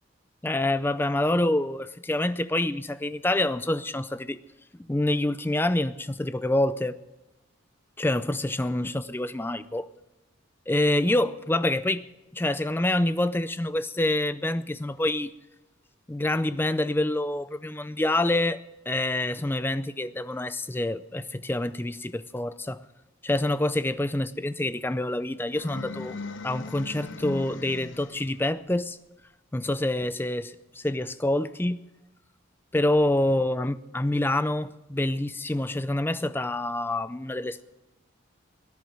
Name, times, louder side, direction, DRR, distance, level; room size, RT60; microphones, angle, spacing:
voice 1, 0.4-4.4 4.9-7.0 8.0-9.9 10.7-12.0 12.3-15.3 16.1-22.8 23.2-26.2 26.4-29.0 29.5-31.8 32.7-37.6, left 1 dB, 10° left, 0.4 m, -27 dB
sound 1, 25.5-28.4, left 3 dB, 65° left, 0.8 m, -39 dB
18.0 x 10.5 x 6.3 m
head